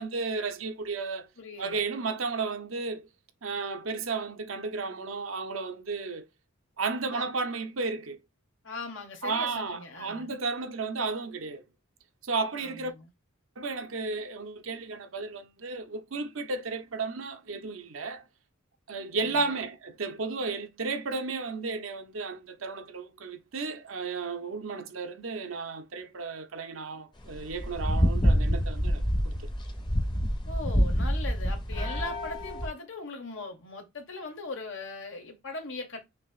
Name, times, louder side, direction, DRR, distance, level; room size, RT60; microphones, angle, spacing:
voice 1, 0.0-1.3 1.6-3.1 3.4-6.2 6.8-8.2 9.2-11.6 12.2-12.9 13.6-18.2 18.9-29.5, right 4 dB, 75° right, 0.8 m, -33 dB
voice 2, 1.4-1.8 7.1-7.3 8.6-10.3 12.6-13.1 19.2-19.6 30.5-36.0, left 3 dB, 70° left, 1.6 m, -40 dB
sound 1, 27.2-32.7, equal, 25° left, 1.0 m, -27 dB
5.9 x 2.9 x 2.4 m
head